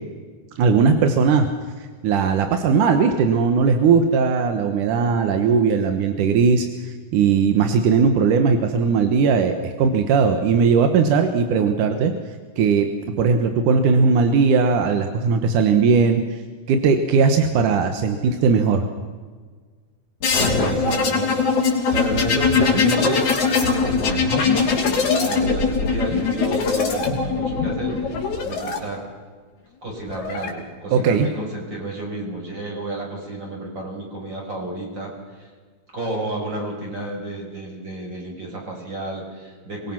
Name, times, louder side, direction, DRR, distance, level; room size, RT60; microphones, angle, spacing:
voice 1, 0.6-1.5 1.8-12.1 12.6-12.9 13.2-16.4 16.7-18.9 30.9-31.3, right 5 dB, 85° right, 6 dB, 2.8 m, -18 dB
sound 1, 20.2-28.8 29.9-30.5, left 5 dB, 75° left, 4.6 m, -21 dB
voice 2, 20.3-21.5 21.9-29.0 29.8-35.5 35.9-39.9, right 1 dB, 35° right, -1 dB, 6.0 m, -31 dB
25.0 x 21.0 x 6.0 m, 1.5 s
omnidirectional pair, 3.5 m